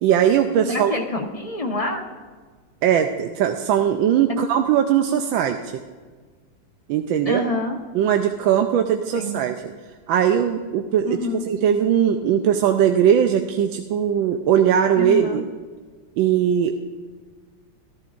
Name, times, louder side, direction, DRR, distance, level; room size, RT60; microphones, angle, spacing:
voice 1, 0.0-0.9 2.8-5.8 6.9-7.4 7.9-9.5 10.1-11.2 11.5-15.4 16.2-16.8, right 9 dB, 85° right, 5 dB, 1.4 m, -19 dB
voice 2, 0.6-2.0 4.3-4.4 7.2-7.8 9.1-9.4 11.0-11.5 15.0-15.4, left 2 dB, 25° left, 1 dB, 1.0 m, -27 dB
14.0 x 13.5 x 2.5 m, 1.5 s
omnidirectional pair, 2.1 m